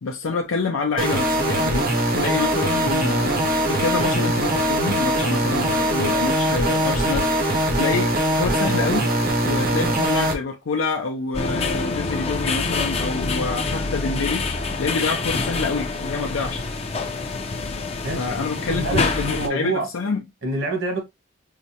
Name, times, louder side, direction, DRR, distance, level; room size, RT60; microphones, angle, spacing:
voice 1, 0.0-9.1 9.4-16.6 18.1-20.2, left 4 dB, 80° left, 0.5 m, -27 dB
sound 1, 1.0-10.3, right 1 dB, 45° right, 0.7 m, -21 dB
sound 2, 11.3-19.5, left 3 dB, 30° left, 0.4 m, -26 dB
voice 2, 18.0-19.9 20.4-21.0, right 2 dB, 65° right, 1.3 m, -27 dB
4.8 x 2.1 x 2.7 m
head